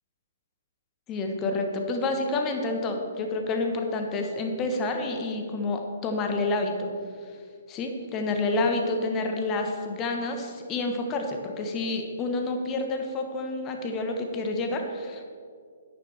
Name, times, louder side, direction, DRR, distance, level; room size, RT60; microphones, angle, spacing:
voice 1, 1.1-6.9 7.7-15.3, left 2 dB, 20° left, 4 dB, 1.1 m, -29 dB
10.5 x 9.4 x 3.4 m, 2.2 s
figure-of-eight pair, 130°, 0 cm